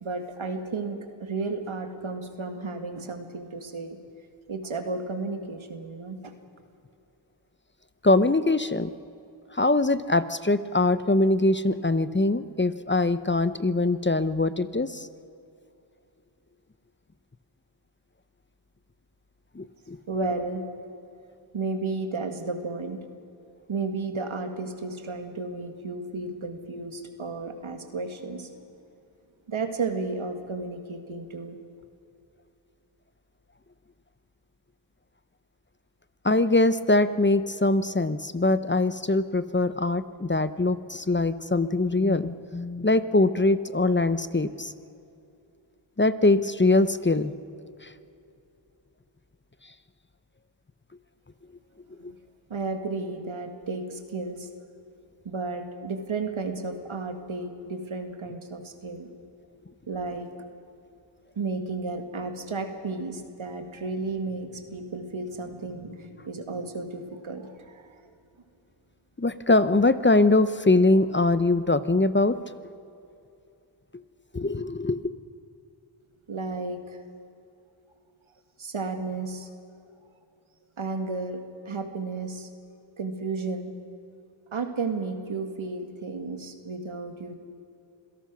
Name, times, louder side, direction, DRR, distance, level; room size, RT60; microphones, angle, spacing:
voice 1, 0.0-4.0 4.5-6.3 20.1-20.7 21.5-23.0 23.7-28.6 29.5-31.6 52.0-52.2 52.5-54.5 55.2-59.1 59.9-60.3 61.4-68.0 76.3-77.0 78.6-79.5 80.8-81.4 81.7-82.5 83.0-83.7 84.5-87.3, right 3 dB, 85° right, 6 dB, 2.0 m, -33 dB
voice 2, 8.0-8.9 9.5-15.1 19.5-20.0 36.2-44.7 46.0-47.3 47.8-47.9 52.0-52.1 69.2-72.4 74.3-75.1, left 2 dB, 25° left, 13 dB, 0.8 m, -23 dB
26.5 x 17.5 x 6.2 m, 2.7 s
wide cardioid pair, 55°, 47 cm